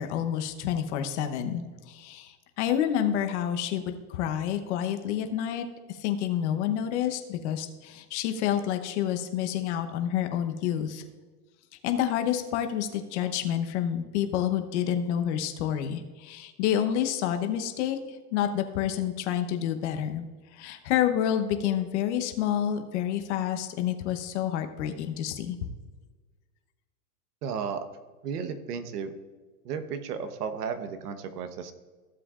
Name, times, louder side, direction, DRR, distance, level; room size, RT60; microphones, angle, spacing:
voice 1, 0.0-11.0 11.8-25.6, left 10 dB, 50° left, 6 dB, 1.0 m, -29 dB
voice 2, 27.4-27.8 28.2-29.1 29.6-31.7, right 6 dB, 85° right, 9 dB, 1.2 m, -34 dB
15.5 x 7.7 x 2.5 m, 1.4 s
supercardioid pair, 160°, 46 cm